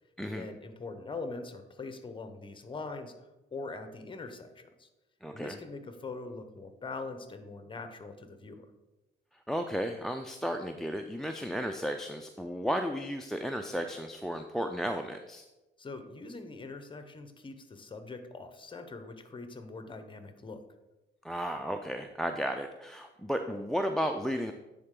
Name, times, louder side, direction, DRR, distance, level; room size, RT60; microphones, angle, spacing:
voice 1, 0.2-4.9 5.3-8.7 15.8-20.6, left 3 dB, 25° left, 8 dB, 0.8 m, -42 dB
voice 2, 5.2-5.6 9.5-15.4 21.2-24.5, equal, ahead, 6 dB, 0.4 m, -33 dB
9.6 x 4.1 x 3.7 m, 1.1 s
cardioid pair, 90°, 20 cm